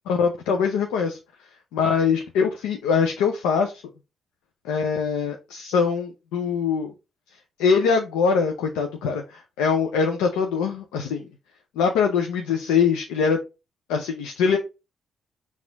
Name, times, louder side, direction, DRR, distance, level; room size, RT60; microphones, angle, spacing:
voice 1, 0.1-1.2 1.7-3.8 4.6-6.9 7.6-11.3 11.8-13.4 13.9-14.6, left 6 dB, 85° left, 0.4 m, -23 dB
4.2 x 2.4 x 3.7 m
supercardioid pair, 50°, 0 cm